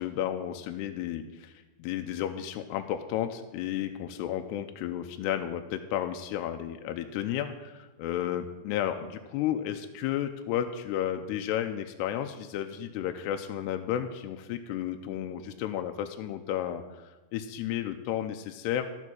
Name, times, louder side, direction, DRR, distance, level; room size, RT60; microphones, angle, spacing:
voice 1, 0.0-1.5 1.8-16.8 17.3-18.9, left 11 dB, 85° left, 6 dB, 2.6 m, -32 dB
13.5 x 7.2 x 6.2 m, 1.1 s
omnidirectional pair, 4.9 m